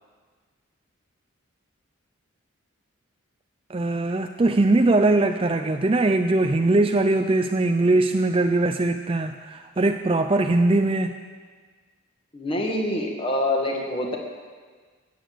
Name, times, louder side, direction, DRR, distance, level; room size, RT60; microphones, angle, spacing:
voice 1, 3.7-11.2, right 2 dB, 25° right, 7 dB, 0.4 m, -21 dB
voice 2, 12.3-14.2, left 1 dB, 25° left, 1 dB, 1.9 m, -25 dB
14.5 x 8.5 x 7.8 m, 1.5 s
head